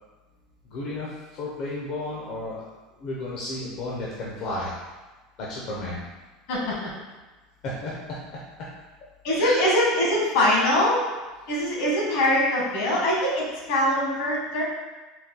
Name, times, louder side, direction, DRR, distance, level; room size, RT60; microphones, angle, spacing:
voice 1, 0.6-2.7 3.0-4.8 5.4-6.1 7.6-7.9 9.4-9.6, left 2 dB, 55° left, -5 dB, 0.7 m, -33 dB
voice 2, 6.5-6.9 9.2-11.0 11.5-14.6, left 1 dB, 75° left, -4 dB, 1.3 m, -23 dB
4.1 x 2.2 x 3.8 m, 1.2 s
supercardioid pair, 130°, 0 cm